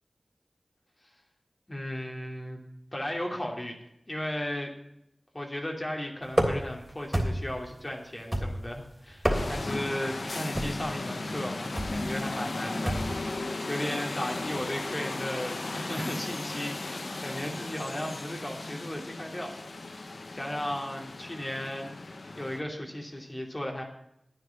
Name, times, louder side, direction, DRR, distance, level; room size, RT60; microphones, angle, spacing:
voice 1, 1.7-2.6 2.9-3.8 4.1-4.7 5.3-19.6 19.9-20.1 20.3-21.9 22.4-23.8, left 1 dB, 30° left, 1 dB, 2.7 m, -35 dB
sound 1, 6.3-6.8 7.1-7.6 8.3-8.8 9.1-9.8 10.5-10.9 11.8-12.0 12.9-13.2, equal, 5° right, 3.2 m, -28 dB
sound 2, 9.3-22.6, left 2 dB, 70° left, 1.0 m, -36 dB
11.0 x 9.7 x 5.9 m, 0.80 s
wide cardioid pair, 45°, 0 cm